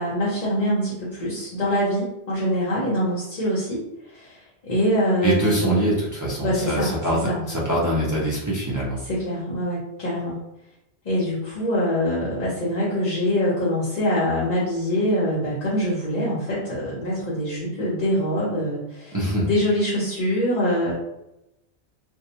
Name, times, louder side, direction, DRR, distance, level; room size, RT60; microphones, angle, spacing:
voice 1, 0.0-3.8 4.1-5.8 6.4-7.4 9.0-10.4 11.0-20.9, equal, 45° left, -8 dB, 0.7 m, -24 dB
voice 2, 5.2-9.0 19.1-19.5, right 1 dB, 25° right, -6 dB, 0.4 m, -23 dB
2.7 x 2.2 x 2.7 m, 0.88 s
omnidirectional pair, 1.2 m